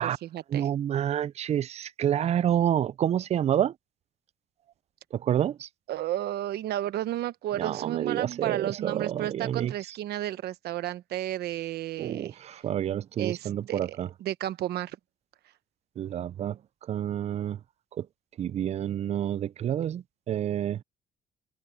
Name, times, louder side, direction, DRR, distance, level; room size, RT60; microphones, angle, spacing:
voice 1, 0.0-0.7 5.9-12.3 13.2-15.0, right 13 dB, 70° right, 1.1 m, -32 dB
voice 2, 0.5-3.7 5.1-5.7 7.6-9.7 12.0-14.1 16.0-16.6 16.9-17.6 18.0-18.1 18.4-20.8, right 10 dB, 40° right, 0.4 m, -28 dB
open air
cardioid pair, 110°, 17 cm